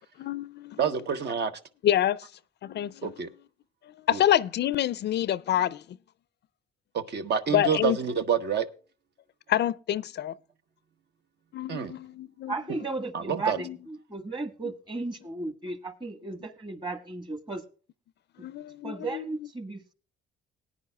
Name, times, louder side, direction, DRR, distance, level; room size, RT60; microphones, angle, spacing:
voice 1, 0.2-0.8 1.8-2.2 2.6-3.1 4.1-5.8 7.5-8.0 9.5-10.3 11.5-12.5 13.6-13.8 18.4-19.2, left 11 dB, 60° left, 0.4 m, -27 dB
voice 2, 0.8-1.5 3.0-3.3 4.1-4.2 6.9-8.7 11.7-11.9 13.1-13.6, right 7 dB, 55° right, 1.0 m, -28 dB
voice 3, 12.5-17.6 18.4-18.5 18.8-19.8, right 3 dB, 25° right, 1.5 m, -35 dB
19.0 x 9.8 x 2.3 m
cardioid pair, 90°, 20 cm